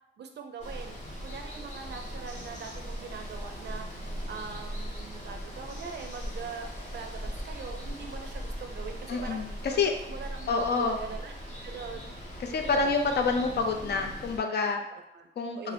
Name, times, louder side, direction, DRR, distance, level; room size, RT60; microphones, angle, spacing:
voice 1, 0.2-3.9 4.3-9.4 9.7-12.1 12.6-13.0 14.9-15.3 15.5-15.7, right 6 dB, 65° right, 5 dB, 0.4 m, -42 dB
Water, 0.6-14.4, equal, 40° left, 0.7 m, -39 dB
voice 2, 9.1-9.9 10.5-11.0 12.4-14.8 15.4-15.7, left 4 dB, 65° left, 4 dB, 0.4 m, -27 dB
2.6 x 2.4 x 3.2 m, 0.83 s
wide cardioid pair, 140°, 19 cm